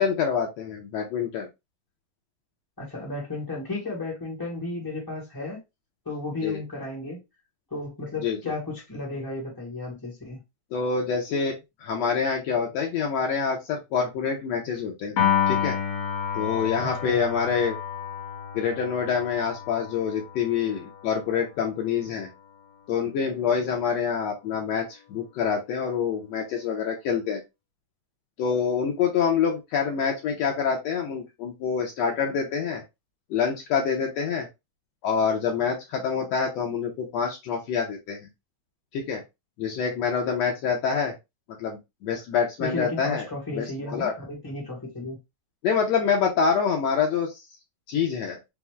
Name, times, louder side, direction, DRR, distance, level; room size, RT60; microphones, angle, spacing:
voice 1, 0.0-1.5 6.4-6.6 8.2-8.4 10.7-11.5 11.8-15.2 15.5-15.8 16.3-17.8 18.5-22.3 22.9-27.4 28.4-32.8 33.3-34.5 35.0-38.2 38.9-39.2 39.6-41.1 41.6-43.3 43.5-44.1 45.6-47.4 47.9-48.4, left 6 dB, 80° left, 1.5 m, -26 dB
voice 2, 2.8-5.6 6.0-7.2 7.7-10.4 16.8-17.2 42.6-45.2, left 2 dB, 15° left, 0.9 m, -34 dB
Piano, 15.2-21.6, left 8 dB, 60° left, 2.1 m, -30 dB
5.8 x 2.1 x 3.4 m
omnidirectional pair, 4.0 m